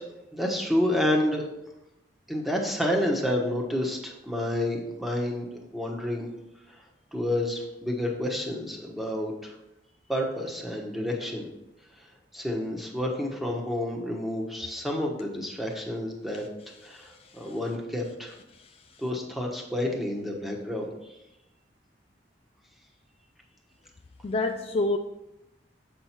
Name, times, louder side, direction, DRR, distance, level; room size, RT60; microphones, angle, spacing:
voice 1, 0.3-1.4 2.3-6.3 6.7-6.8 7.1-9.5 10.1-11.5 12.3-16.4 16.8-18.3 19.0-21.2, left 1 dB, ahead, -1 dB, 1.2 m, -29 dB
voice 2, 16.9-17.5 18.6-18.7 24.2-25.0, left 2 dB, 35° left, 4 dB, 0.4 m, -29 dB
7.7 x 5.8 x 4.5 m, 0.91 s
head